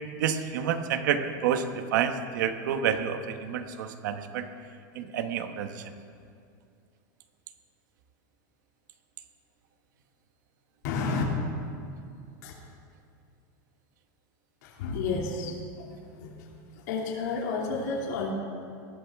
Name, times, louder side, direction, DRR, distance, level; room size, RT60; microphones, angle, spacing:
voice 1, 0.2-4.5 4.9-5.8, right 8 dB, 70° right, 8 dB, 1.1 m, -29 dB
voice 2, 10.8-11.2 12.4-12.5 14.6-15.6 16.1-16.5 16.7-18.3, left 4 dB, 60° left, -2 dB, 2.6 m, -31 dB
20.0 x 13.5 x 3.6 m, 2.4 s
supercardioid pair, 165°, 10 cm